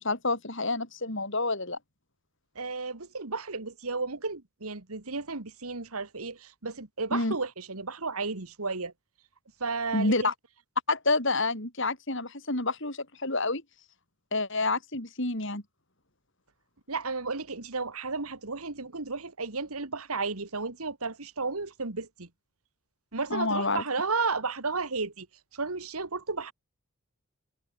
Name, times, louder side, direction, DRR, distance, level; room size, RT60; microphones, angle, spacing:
voice 1, 0.0-1.8 7.1-7.4 9.9-10.3 10.9-13.6 14.3-15.6 23.3-23.8, left 2 dB, 55° left, 5.1 m, -28 dB
voice 2, 2.6-8.9 9.6-10.3 16.9-22.3 23.1-25.3 25.5-26.5, right 4 dB, 85° right, 2.1 m, -33 dB
head